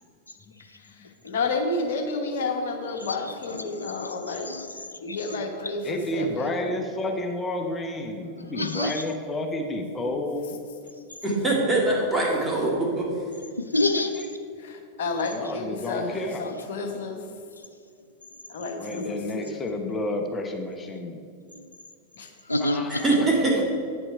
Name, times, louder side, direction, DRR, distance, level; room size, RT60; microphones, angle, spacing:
voice 1, 1.2-4.5 5.0-6.5 14.6-16.1 16.4-17.2 18.5-19.5 22.2-22.3, left 3 dB, 55° left, 4 dB, 1.1 m, -30 dB
voice 2, 3.0-5.7 8.5-9.0 13.5-14.1 17.6-17.7 18.8-19.2 21.5-21.7 22.5-23.2, left 2 dB, 80° left, 8 dB, 0.5 m, -30 dB
voice 3, 5.8-10.6 14.0-14.3 15.3-16.5 18.8-21.3 22.6-23.3, left 1 dB, 15° left, 3 dB, 0.8 m, -31 dB
voice 4, 11.2-13.1 22.9-23.6, right 2 dB, 10° right, -4 dB, 2.2 m, -23 dB
9.2 x 6.0 x 4.6 m, 2.3 s
figure-of-eight pair, 90°, 0 cm